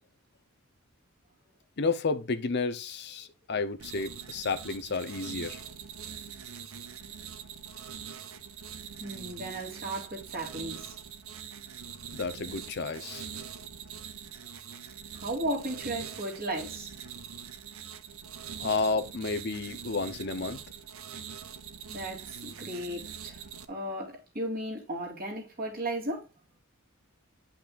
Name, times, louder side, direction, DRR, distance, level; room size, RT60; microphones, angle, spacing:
voice 1, 1.8-5.6 12.1-13.3 18.6-20.6, left 4 dB, 50° left, 0.7 m, -31 dB
sound 1, 3.8-23.6, right 7 dB, 70° right, 0.8 m, -43 dB
voice 2, 9.0-11.0 15.1-16.9 21.9-23.4 23.7-26.3, right 1 dB, 45° right, 3.0 m, -35 dB
10.5 x 5.9 x 2.5 m
head